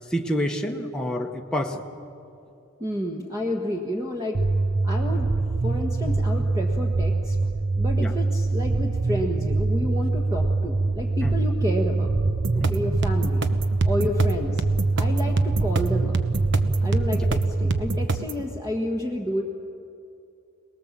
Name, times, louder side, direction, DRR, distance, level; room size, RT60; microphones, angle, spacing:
voice 1, 0.1-1.8 8.0-8.1 11.2-11.4 12.6-12.8 14.0-14.1 17.2-17.3, equal, 5° left, 0 dB, 1.0 m, -28 dB
voice 2, 2.8-4.4 4.8-5.3 5.6-7.4 7.8-12.1 12.5-13.5 13.8-14.6 15.0-16.2 16.8-19.4, left 1 dB, 15° right, 1 dB, 1.5 m, -30 dB
sound 1, 4.3-18.1, right 3 dB, 35° right, 0.5 m, -24 dB
sound 2, 12.3-18.4, right 3 dB, 55° right, 1.0 m, -28 dB
27.0 x 19.5 x 7.5 m, 2.6 s
head